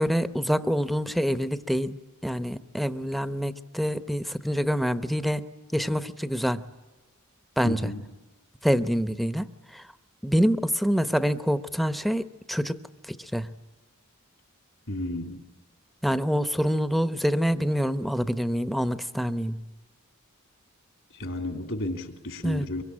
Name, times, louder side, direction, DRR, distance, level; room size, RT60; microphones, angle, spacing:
voice 1, 0.0-2.0 2.2-5.4 5.7-6.6 7.6-7.9 8.6-9.5 9.7-9.8 10.2-12.8 13.3-13.5 16.0-19.6 22.4-22.7, equal, ahead, 12 dB, 0.8 m, -26 dB
voice 2, 7.6-8.0 14.9-15.4 21.1-22.8, left 1 dB, 65° left, 6 dB, 3.3 m, -32 dB
24.5 x 23.5 x 10.0 m, 1.2 s
head